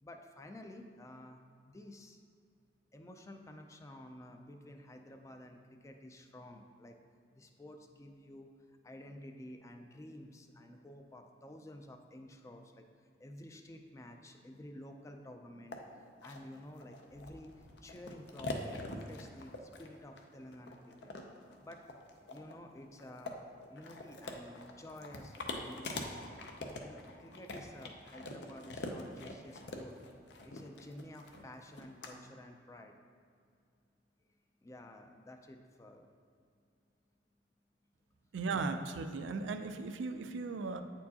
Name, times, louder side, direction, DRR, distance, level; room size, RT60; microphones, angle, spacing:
voice 1, 0.0-2.2 2.9-7.0 7.3-12.8 13.2-21.1 21.6-21.8 22.3-23.4 23.7-26.2 26.8-29.9 30.4-32.9 34.2-34.3 34.6-36.1, left 1 dB, 15° left, 4 dB, 0.3 m, -51 dB
sound 1, 15.7-15.8 16.2-32.1, left 2 dB, 65° left, 0.5 m, -44 dB
voice 2, 38.3-40.8, right 4 dB, 80° right, 8 dB, 0.4 m, -37 dB
8.3 x 4.5 x 2.8 m, 2.3 s
head